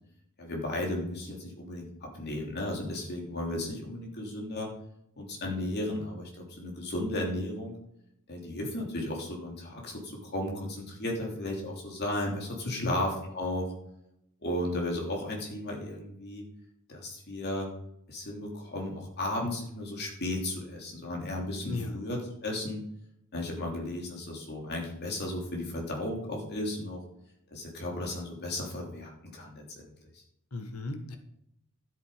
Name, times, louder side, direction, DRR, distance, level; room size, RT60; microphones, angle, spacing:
voice 1, 0.4-4.7 5.2-7.7 8.3-13.7 14.4-16.4 16.9-17.7 18.1-22.8 23.3-27.0 27.5-30.2, left 1 dB, 50° left, -1 dB, 3.2 m, -34 dB
voice 2, 12.6-13.0 21.7-22.0 30.5-31.2, left 2 dB, 80° left, 7 dB, 1.4 m, -35 dB
12.5 x 7.8 x 5.0 m, 0.77 s
head